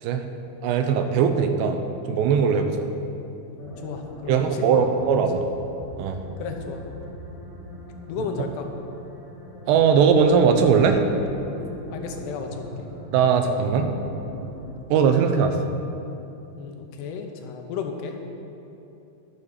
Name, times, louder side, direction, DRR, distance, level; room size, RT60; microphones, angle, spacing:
voice 1, 0.6-1.8 2.1-2.9 4.3-5.4 6.0-6.2 9.7-11.0 13.1-13.9 14.9-15.7, right 6 dB, 85° right, 6 dB, 2.9 m, -20 dB
sound 1, 3.6-14.7, left 1 dB, 40° left, 1.9 m, -40 dB
voice 2, 3.8-5.0 6.4-6.8 8.1-8.7 11.9-12.7 16.5-18.2, left 6 dB, 80° left, 3 dB, 2.9 m, -33 dB
11.0 x 7.3 x 6.6 m, 2.9 s
omnidirectional pair, 4.9 m